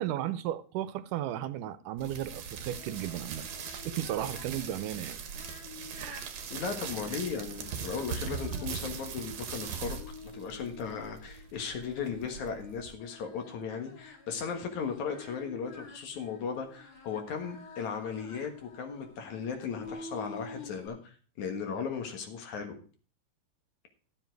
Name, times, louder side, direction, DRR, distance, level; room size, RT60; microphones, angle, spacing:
voice 1, 0.0-3.5 3.9-5.2 6.0-6.2, right 12 dB, 85° right, 2.2 m, -35 dB
sound 1, 2.0-13.0, right 7 dB, 60° right, 2.3 m, -40 dB
Singing, 2.1-20.9, left 3 dB, 40° left, 1.5 m, -50 dB
voice 2, 6.5-22.8, left 6 dB, 65° left, 2.8 m, -37 dB
12.5 x 7.4 x 4.6 m
omnidirectional pair, 3.8 m